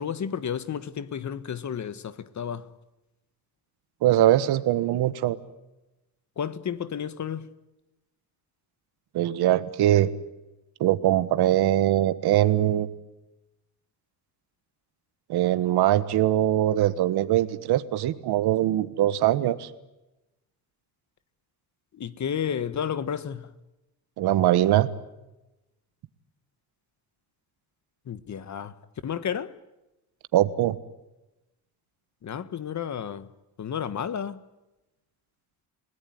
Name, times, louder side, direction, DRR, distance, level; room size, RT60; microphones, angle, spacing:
voice 1, 0.0-2.7 6.4-7.5 21.9-23.5 28.1-28.7 29.0-29.5 32.2-33.3 33.6-34.4, left 8 dB, 45° left, 1.5 m, -32 dB
voice 2, 4.0-5.4 9.1-10.1 10.8-12.9 15.3-19.7 24.2-24.9 30.3-30.8, right 13 dB, 85° right, 1.5 m, -22 dB
30.0 x 18.0 x 9.5 m
cardioid pair, 110°, 38 cm